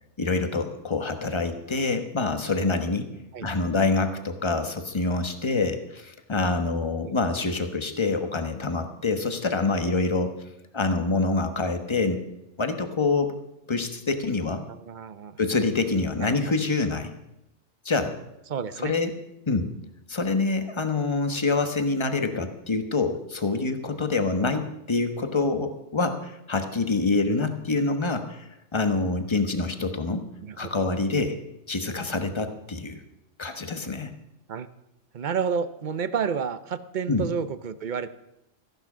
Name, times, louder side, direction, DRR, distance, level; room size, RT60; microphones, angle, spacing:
voice 1, 0.2-3.1 3.4-10.3 10.7-12.2 12.6-13.4 13.7-14.6 15.4-17.1 17.8-18.1 18.8-19.1 19.5-19.7 20.1-28.4 28.7-30.3 30.6-31.4 31.7-33.0 33.4-34.1 37.1-37.2, left 3 dB, 25° left, 7 dB, 1.2 m, -26 dB
voice 2, 14.7-15.4 16.2-16.5 18.5-18.9 24.4-24.5 30.4-30.9 34.5-34.7 35.1-38.1, right 6 dB, 45° right, 13 dB, 0.7 m, -30 dB
14.5 x 11.0 x 6.1 m, 0.89 s
omnidirectional pair, 1.3 m